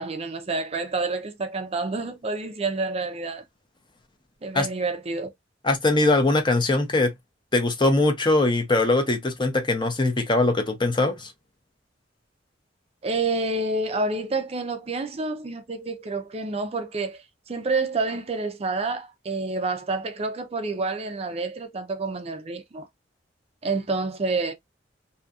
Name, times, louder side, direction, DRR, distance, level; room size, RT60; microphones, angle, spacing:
voice 1, 0.0-3.4 4.4-5.3 13.0-22.9 23.6-24.5, right 3 dB, 35° right, 0.5 m, -28 dB
voice 2, 5.6-7.1 7.5-11.3, left 2 dB, 25° left, 0.7 m, -21 dB
2.7 x 2.6 x 2.3 m
head